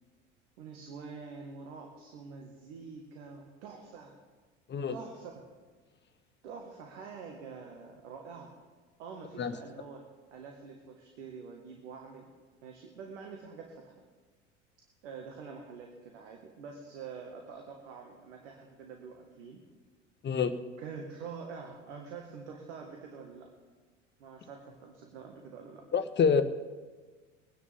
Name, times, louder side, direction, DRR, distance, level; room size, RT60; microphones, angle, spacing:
voice 1, 0.6-4.1 4.9-5.3 6.4-8.5 9.0-10.0 10.3-12.3 12.6-13.9 15.0-19.6 20.8-23.5 24.2-25.8, right 5 dB, 70° right, 2 dB, 1.9 m, -46 dB
voice 2, 20.2-20.5 25.9-26.4, left 6 dB, 30° left, 10 dB, 1.1 m, -26 dB
23.0 x 10.0 x 3.7 m, 1.4 s
hypercardioid pair, 70°, 36 cm